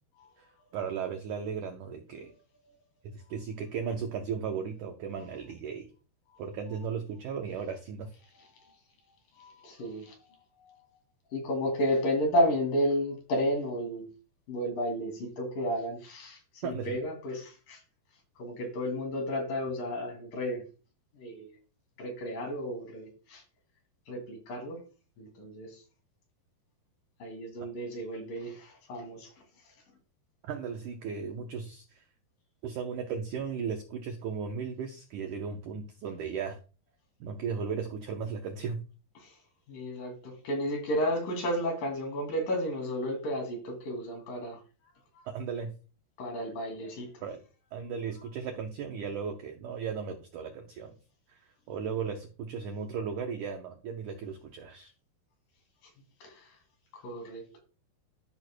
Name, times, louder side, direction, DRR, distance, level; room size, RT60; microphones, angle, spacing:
voice 1, 0.7-2.3 3.1-5.9 6.4-8.1 16.6-16.9 30.5-32.0 32.6-36.6 37.2-38.8 45.3-45.7 46.8-46.9 47.2-47.4 47.7-50.9 51.3-51.4 51.7-54.9, right 6 dB, 85° right, 4 dB, 1.7 m, -36 dB
voice 2, 9.4-10.2 10.6-10.9 11.3-14.1 14.5-17.8 18.4-20.6 21.2-21.5 22.0-23.4 24.1-24.8 25.2-25.8 27.2-29.3 39.2-39.3 39.7-44.6 45.2-45.3 46.2-47.2 48.2-48.3 56.2-56.5 56.9-57.6, equal, 60° left, 3 dB, 3.9 m, -32 dB
13.5 x 6.1 x 2.2 m, 0.35 s
omnidirectional pair, 4.8 m